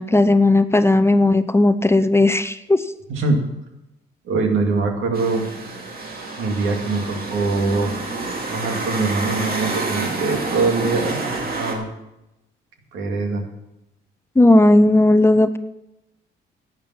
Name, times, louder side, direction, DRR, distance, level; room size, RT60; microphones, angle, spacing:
voice 1, 0.0-2.8 14.4-15.6, left 2 dB, 15° left, 12 dB, 0.6 m, -15 dB
voice 2, 3.1-3.4 4.2-5.5 6.4-7.9 8.5-11.9 12.9-13.4, right 3 dB, 85° right, 3 dB, 2.3 m, -23 dB
sound 1, 5.1-11.7, right 3 dB, 50° right, 2.6 m, -28 dB
11.5 x 8.8 x 5.9 m, 0.90 s
cardioid pair, 90°, 20 cm